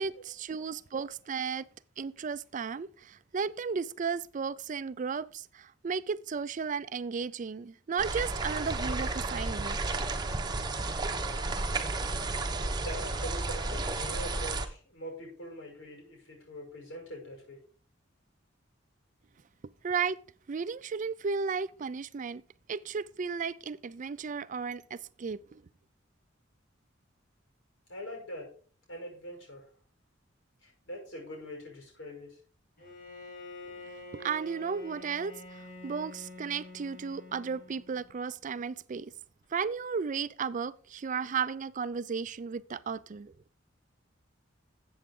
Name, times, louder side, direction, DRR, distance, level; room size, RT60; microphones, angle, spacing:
voice 1, 0.0-1.7 2.0-10.1 19.8-20.2 20.5-22.4 22.7-25.6 34.1-39.1 39.5-43.3, right 5 dB, 40° right, 0.4 m, -34 dB
sound 1, 8.0-14.7, right 3 dB, 20° right, 1.0 m, -32 dB
voice 2, 12.8-17.6 27.9-28.5 28.9-29.7 30.6-32.4, equal, 85° left, 6.5 m, -43 dB
Bowed string instrument, 32.8-38.2, left 2 dB, 50° left, 4.9 m, -47 dB
13.5 x 7.9 x 3.8 m
head